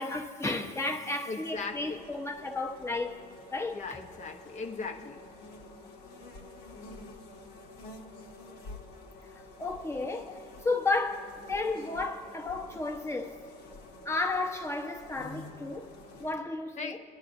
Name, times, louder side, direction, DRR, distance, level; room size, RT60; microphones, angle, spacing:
voice 1, 0.0-3.2 3.5-3.8 9.6-13.4 14.0-15.9 16.2-17.0, left 3 dB, 15° left, 0.9 m, -33 dB
voice 2, 1.3-2.0 3.7-5.2 16.8-17.0, left 4 dB, 45° left, 0.8 m, -38 dB
sound 1, 1.5-16.3, left 2 dB, 85° left, 1.4 m, -49 dB
21.5 x 10.5 x 2.6 m
cardioid pair, 110°, 17 cm